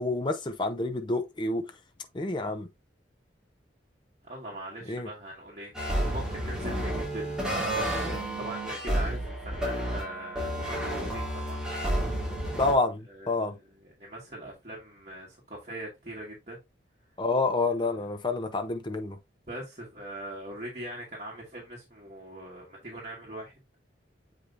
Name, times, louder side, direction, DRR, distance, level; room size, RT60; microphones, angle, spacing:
voice 1, 0.0-1.7 2.1-2.7 4.9-5.1 12.6-13.6 17.2-19.2, left 3 dB, 25° left, 0.6 m, -28 dB
voice 2, 4.2-11.6 13.1-13.6 14.0-16.6 19.5-23.5, right 1 dB, 35° right, 2.1 m, -41 dB
sound 1, 5.7-12.7, right 1 dB, 5° right, 3.0 m, -31 dB
7.6 x 5.1 x 2.7 m
head